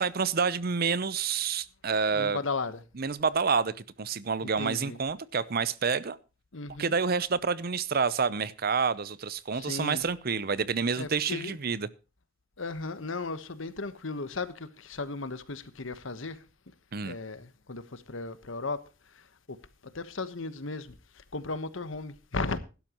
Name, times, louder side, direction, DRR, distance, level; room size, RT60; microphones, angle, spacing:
voice 1, 0.0-2.4 3.0-6.2 6.8-11.9 16.9-17.2, right 5 dB, 50° right, 0.7 m, -28 dB
voice 2, 2.1-2.8 4.4-5.0 6.5-6.9 9.5-10.0 11.0-11.6 12.6-16.4 17.0-18.8 19.1-19.6 19.9-22.6, left 3 dB, 75° left, 1.2 m, -36 dB
16.0 x 12.0 x 3.0 m
head